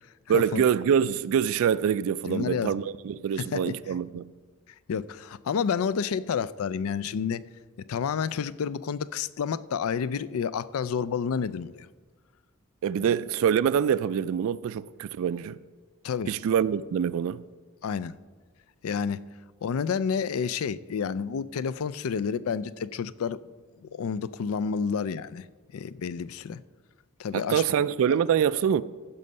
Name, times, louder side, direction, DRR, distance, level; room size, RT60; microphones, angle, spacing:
voice 1, 0.3-4.3 12.8-15.6 16.3-17.4 27.3-28.8, right 8 dB, 65° right, 0.3 m, -25 dB
voice 2, 2.3-2.8 3.4-3.7 4.9-7.4 7.9-11.9 13.1-13.2 16.0-16.3 17.8-18.2 18.8-19.2 19.6-23.5 23.8-25.4 25.7-26.6 27.2-27.6 28.1-28.2, left 6 dB, 70° left, 0.4 m, -30 dB
14.5 x 5.6 x 5.4 m
head